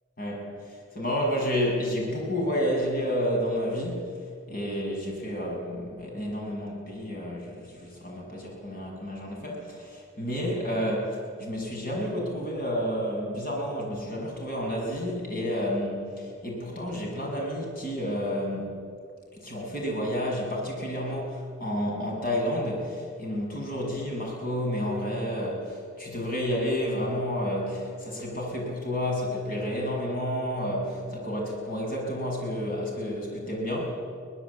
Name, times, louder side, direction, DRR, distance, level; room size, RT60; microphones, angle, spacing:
voice 1, 0.2-4.0 4.5-18.9 19.3-33.9, equal, 45° left, -1 dB, 6.8 m, -30 dB
23.5 x 18.5 x 8.4 m, 2.2 s
head